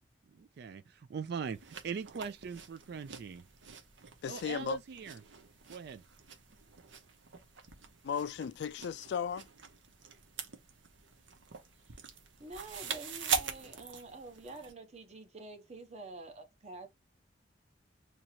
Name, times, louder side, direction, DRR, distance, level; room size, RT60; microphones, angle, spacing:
voice 1, 0.3-0.8 1.1-3.4 4.3-5.2 5.7-6.0, right 6 dB, 60° right, 0.3 m, -41 dB
sound 1, 1.4-14.7, right 6 dB, 80° right, 0.8 m, -43 dB
voice 2, 4.2-4.8 8.0-9.5, left 7 dB, 65° left, 0.3 m, -35 dB
voice 3, 12.4-16.9, right 2 dB, 35° right, 0.9 m, -48 dB
2.8 x 2.7 x 4.4 m
head